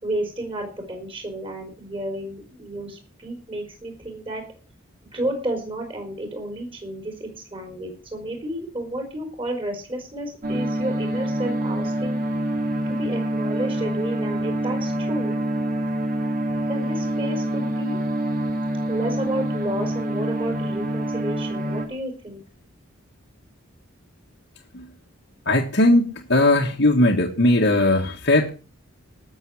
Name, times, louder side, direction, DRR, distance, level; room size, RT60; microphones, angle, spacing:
voice 1, 0.0-4.4 5.1-12.2 12.9-15.3 16.7-18.0 18.9-22.4, right 1 dB, 25° right, 4.2 m, -31 dB
sound 1, 10.4-21.9, right 1 dB, 40° right, 2.5 m, -26 dB
voice 2, 25.5-28.5, left 1 dB, 55° left, 1.6 m, -18 dB
19.5 x 7.2 x 4.9 m
head